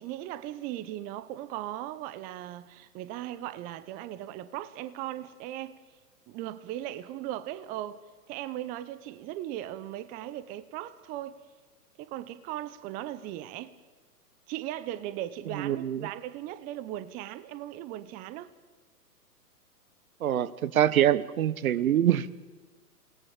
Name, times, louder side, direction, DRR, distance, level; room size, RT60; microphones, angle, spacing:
voice 1, 0.0-5.8 6.3-8.0 8.3-11.4 12.0-13.7 14.5-18.5, right 13 dB, 20° right, 0.6 m, -38 dB
voice 2, 15.6-16.0 20.2-22.3, right 11 dB, 60° right, 1.1 m, -25 dB
28.0 x 18.5 x 7.2 m
hypercardioid pair, 120°, 47 cm